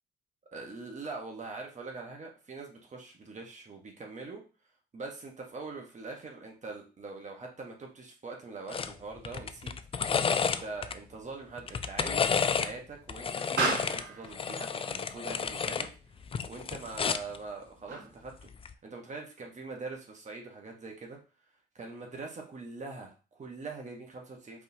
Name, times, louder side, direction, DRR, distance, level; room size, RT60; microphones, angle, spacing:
voice 1, 0.5-4.4 4.9-9.7 10.0-15.9 16.5-18.3 18.8-21.2 21.7-24.6, right 3 dB, 35° right, 1 dB, 1.2 m, -43 dB
sound 1, 8.7-8.9 9.2-10.9 11.6-12.7 13.1-15.9 16.2-17.4 18.5-18.7, left 6 dB, 30° left, 0.3 m, -31 dB
Explosion, 9.4-18.4, right 3 dB, 65° right, 2.4 m, -40 dB
5.2 x 3.3 x 2.7 m, 0.34 s
cardioid pair, 90°, 20 cm